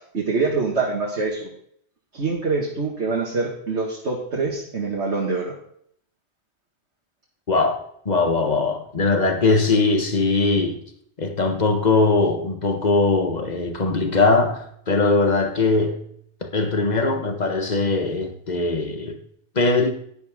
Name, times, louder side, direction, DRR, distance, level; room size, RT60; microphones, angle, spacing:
voice 1, 0.1-1.5 2.1-5.5, right 4 dB, 70° right, 2.2 m, -25 dB
voice 2, 7.5-10.8 11.2-16.0 16.4-19.2 19.5-19.9, left 3 dB, 35° left, 1.5 m, -21 dB
11.5 x 11.0 x 3.6 m
omnidirectional pair, 1.2 m